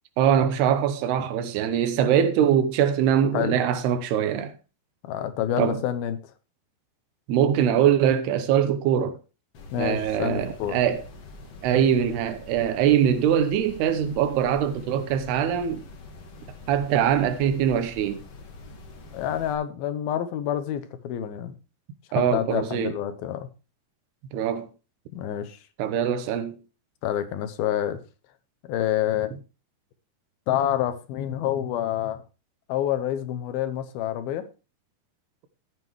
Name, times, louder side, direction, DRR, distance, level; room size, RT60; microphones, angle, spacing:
voice 1, 0.2-4.5 5.6-5.8 7.3-9.2 9.8-11.0 11.6-15.8 16.7-18.2 22.1-23.0 24.3-24.7 25.8-26.6, right 9 dB, 80° right, 3.0 m, -22 dB
voice 2, 5.0-6.2 9.7-10.8 19.1-21.6 22.2-23.5 25.1-25.6 27.0-28.0 28.7-29.4 30.5-32.2 32.7-34.5, left 11 dB, 75° left, 2.7 m, -27 dB
sound 1, 9.5-19.5, left 3 dB, 50° left, 2.2 m, -45 dB
13.5 x 9.3 x 3.1 m
omnidirectional pair, 4.6 m